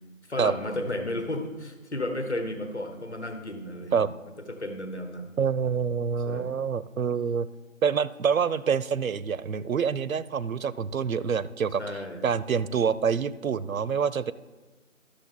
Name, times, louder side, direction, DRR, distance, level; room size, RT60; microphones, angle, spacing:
voice 1, 0.3-4.1 4.5-5.3 6.3-6.5 11.8-12.2, left 1 dB, 55° left, 6 dB, 1.2 m, -33 dB
voice 2, 5.4-7.5 7.8-14.3, right 6 dB, 80° right, 17 dB, 0.5 m, -26 dB
12.0 x 6.5 x 3.7 m, 1.2 s
figure-of-eight pair, 175°, 41 cm